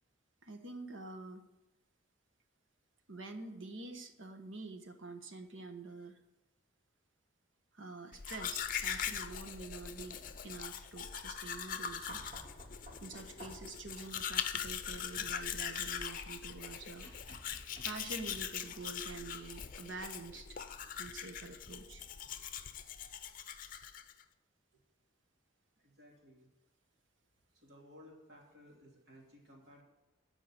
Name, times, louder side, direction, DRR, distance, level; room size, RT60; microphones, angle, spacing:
voice 1, 0.4-1.4 3.1-6.2 7.7-12.2 13.0-17.1 17.8-20.6 21.0-22.0, right 3 dB, 80° right, 7 dB, 1.2 m, -47 dB
Domestic sounds home sounds, 8.1-24.2, left 8 dB, 45° left, 0.6 m, -41 dB
sound 1, 12.1-13.8 17.0-18.8 20.3-20.4, equal, 40° right, 3.3 m, -53 dB
voice 2, 25.8-26.5 27.5-29.8, left 1 dB, 60° right, -1 dB, 2.9 m, -58 dB
13.0 x 5.0 x 8.9 m, 0.96 s
head